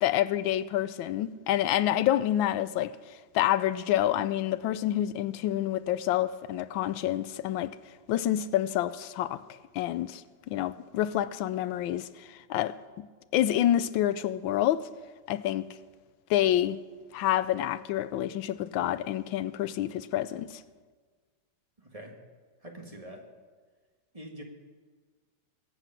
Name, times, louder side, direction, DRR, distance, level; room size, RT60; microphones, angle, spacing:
voice 1, 0.0-2.9 3.3-7.7 8.1-9.4 9.7-10.2 10.5-12.8 13.3-14.9 15.3-15.6 16.3-16.8 17.1-20.6, left 12 dB, 80° left, 1.3 m, -28 dB
voice 2, 21.8-22.1 22.6-23.3 24.1-24.4, right 1 dB, 20° right, 1.8 m, -44 dB
21.5 x 8.0 x 5.9 m
omnidirectional pair, 2.1 m